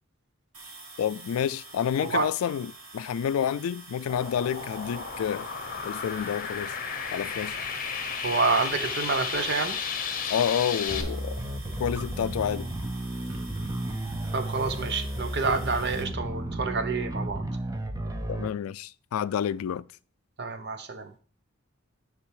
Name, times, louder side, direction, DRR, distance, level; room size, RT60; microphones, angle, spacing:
sound 1, 0.5-16.0, right 3 dB, 85° right, 1.9 m, -47 dB
voice 1, 1.0-5.5 5.8-6.7 7.1-7.6 10.3-11.4 11.8-12.7 18.3-19.9, left 8 dB, 90° left, 0.3 m, -29 dB
sound 2, 4.1-11.0, left 6 dB, 40° left, 0.9 m, -33 dB
voice 2, 8.2-9.8 14.3-17.4 20.4-21.1, right 4 dB, 55° right, 0.8 m, -28 dB
sound 3, 10.9-18.5, right 1 dB, 15° right, 0.6 m, -33 dB
9.8 x 3.5 x 4.7 m
head